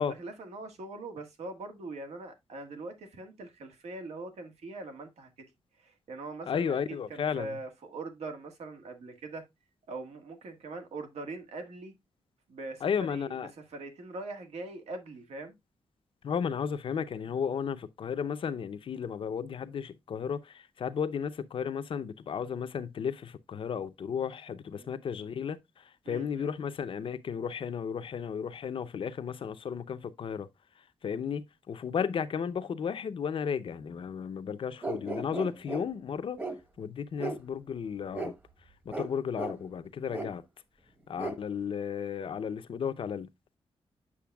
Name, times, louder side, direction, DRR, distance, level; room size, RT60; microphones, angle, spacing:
voice 1, 0.2-5.3 5.8-9.4 9.9-11.9 12.5-15.6 24.8-24.9 26.1-26.5, right 2 dB, 80° right, 1.7 m, -42 dB
voice 2, 6.5-7.6 12.8-13.5 16.2-25.6 26.1-30.5 31.0-36.4 36.8-38.3 38.9-40.4 41.1-43.3, left 7 dB, 55° left, 0.6 m, -34 dB
sound 1, 34.8-35.8 36.4-36.6 37.2-37.4 38.1-38.3 38.9-39.1 39.4-39.6 40.1-40.3 41.2-41.4, right 2 dB, 20° right, 1.0 m, -35 dB
8.5 x 6.6 x 2.2 m
wide cardioid pair, 160°, 11 cm